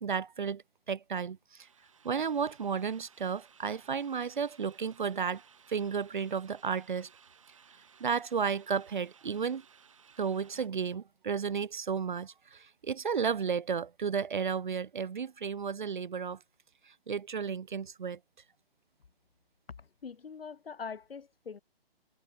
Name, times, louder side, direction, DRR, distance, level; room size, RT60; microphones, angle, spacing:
voice 1, 0.0-0.6 0.9-1.4 2.0-5.4 5.7-7.1 8.0-9.6 10.2-16.4 17.1-18.2, right 6 dB, 55° right, 0.4 m, -33 dB
sound 1, 1.6-10.7, right 7 dB, 30° right, 1.7 m, -60 dB
voice 2, 20.0-21.6, left 6 dB, 70° left, 1.5 m, -42 dB
hypercardioid pair, 180°, 30 cm